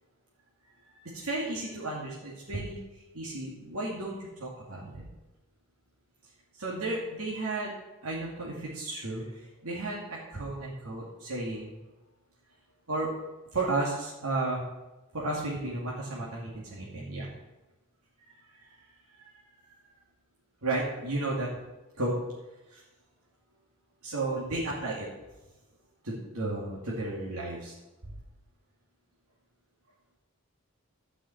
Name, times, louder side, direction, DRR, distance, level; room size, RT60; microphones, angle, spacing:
voice 1, 0.9-5.0 6.6-7.7 8.0-11.7 12.9-13.1 13.5-14.6 15.1-17.3 19.2-19.3 20.6-21.5 22.0-22.2 22.7-22.8 24.0-25.1 26.0-27.7 28.1-28.2, right 2 dB, 80° right, -5 dB, 2.4 m, -33 dB
12.5 x 5.7 x 7.9 m, 1.0 s
head